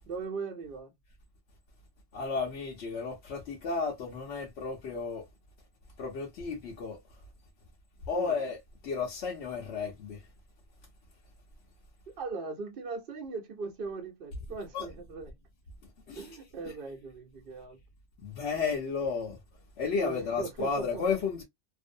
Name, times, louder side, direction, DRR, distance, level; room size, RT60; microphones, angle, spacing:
voice 1, 0.1-0.9 8.1-8.4 12.1-15.3 16.1-17.8 20.0-21.0, right 4 dB, 60° right, 0.8 m, -39 dB
voice 2, 2.1-5.2 6.0-7.0 8.1-8.6 8.8-10.3 14.7-14.9 16.1-16.3 18.2-19.4 19.8-21.4, left 5 dB, 85° left, 0.9 m, -33 dB
2.5 x 2.0 x 2.4 m
omnidirectional pair, 1.1 m